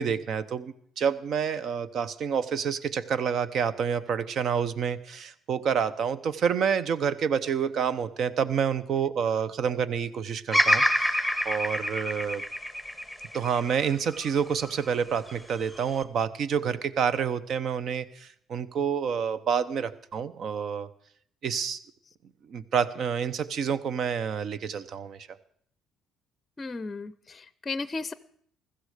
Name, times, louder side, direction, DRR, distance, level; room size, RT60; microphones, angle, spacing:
voice 1, 0.0-11.2 11.4-12.4 13.3-20.9 21.4-21.8 22.5-25.3, right 7 dB, 60° right, 15 dB, 0.8 m, -28 dB
Bird vocalization bird call bird song, 10.5-14.7 15.3-16.0, equal, 10° right, 1.6 m, -27 dB
voice 2, 26.6-28.1, left 3 dB, 25° left, 15 dB, 0.6 m, -35 dB
16.0 x 13.0 x 5.0 m, 0.63 s
supercardioid pair, 80°, 0 cm